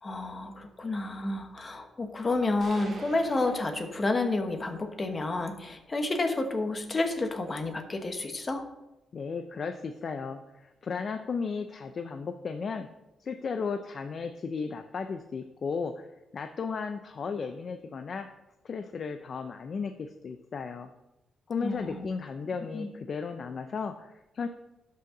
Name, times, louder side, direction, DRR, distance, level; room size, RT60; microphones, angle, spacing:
voice 1, 0.0-8.6 21.6-22.1 22.7-22.9, left 2 dB, 30° left, 6 dB, 1.2 m, -30 dB
sound 1, 2.6-4.6, right 2 dB, 50° right, 2.0 m, -48 dB
voice 2, 9.1-12.9 13.2-16.1 16.3-18.3 18.6-20.9 21.5-24.5, left 5 dB, 50° left, 7 dB, 0.5 m, -35 dB
12.0 x 5.6 x 3.8 m, 0.95 s
cardioid pair, 100°, 0 cm